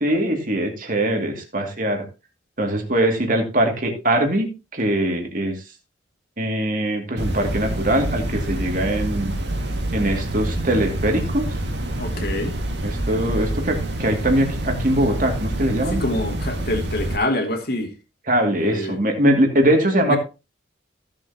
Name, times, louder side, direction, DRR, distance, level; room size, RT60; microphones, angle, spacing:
voice 1, 0.0-2.0 2.6-5.6 6.4-9.3 9.9-11.6 12.8-16.0 18.3-20.2, right 1 dB, 45° right, 2.5 m, -22 dB
sound 1, 7.2-17.2, right 1 dB, 60° right, 2.0 m, -27 dB
voice 2, 12.0-12.5 15.9-17.9 18.6-19.0 20.1-20.2, left 1 dB, 50° left, 2.2 m, -25 dB
15.5 x 7.5 x 2.9 m
head